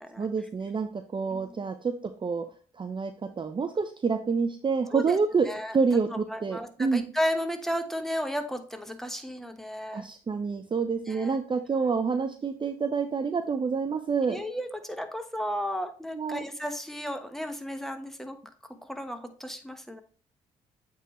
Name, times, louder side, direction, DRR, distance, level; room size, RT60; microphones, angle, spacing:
voice 1, 0.2-2.5 2.8-3.1 3.4-5.5 5.7-7.0 9.9-14.4 16.1-16.4, right 5 dB, 30° right, 8 dB, 0.5 m, -28 dB
voice 2, 5.4-5.8 6.3-10.1 11.1-11.4 14.2-18.4 18.8-20.0, equal, ahead, 7 dB, 1.1 m, -34 dB
8.2 x 3.7 x 3.1 m, 0.40 s
hypercardioid pair, 50°, 17 cm